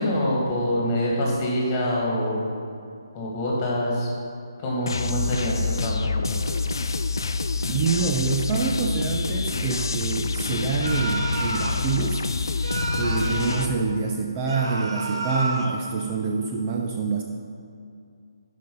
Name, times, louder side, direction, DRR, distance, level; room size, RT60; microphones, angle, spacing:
voice 1, 0.0-2.5 3.1-4.1 4.6-6.4 13.2-13.4, equal, 25° left, -4 dB, 2.0 m, -25 dB
sound 1, 4.9-13.7, left 4 dB, 65° left, 0.4 m, -27 dB
voice 2, 7.7-12.2 12.9-17.2, right 5 dB, 25° right, 0 dB, 0.5 m, -26 dB
sound 2, 10.8-11.9 12.6-13.7 14.5-15.8, right 2 dB, 75° right, 0.8 m, -30 dB
7.6 x 5.1 x 5.5 m, 2.4 s
figure-of-eight pair, 145°, 2 cm